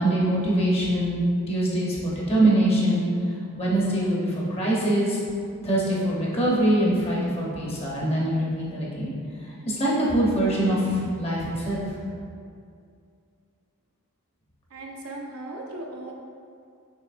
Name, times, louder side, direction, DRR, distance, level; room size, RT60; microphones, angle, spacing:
voice 1, 0.0-3.1 3.5-5.2 5.6-9.2 9.7-11.8, right 1 dB, 25° left, -5 dB, 0.9 m, -23 dB
voice 2, 14.7-16.1, right 2 dB, 70° right, -1 dB, 0.6 m, -37 dB
6.6 x 3.1 x 2.5 m, 2.3 s
head